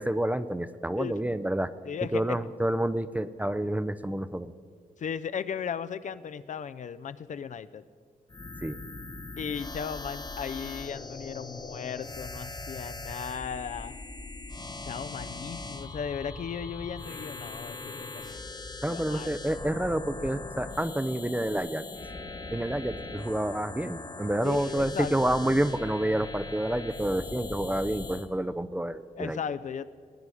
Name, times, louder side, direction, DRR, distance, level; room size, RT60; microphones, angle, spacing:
voice 1, 0.0-1.7 2.1-4.5 8.6-8.8 18.8-21.8 22.5-29.4, right 1 dB, 10° right, 14 dB, 0.4 m, -29 dB
voice 2, 1.9-2.4 5.0-7.8 9.4-14.0 14.8-19.4 24.4-25.3 29.2-29.8, left 7 dB, 55° left, 13 dB, 0.4 m, -36 dB
sound 1, 8.3-28.3, left 3 dB, 30° left, 1.4 m, -40 dB
19.5 x 9.2 x 4.9 m, 2.1 s
cardioid pair, 80°, 15 cm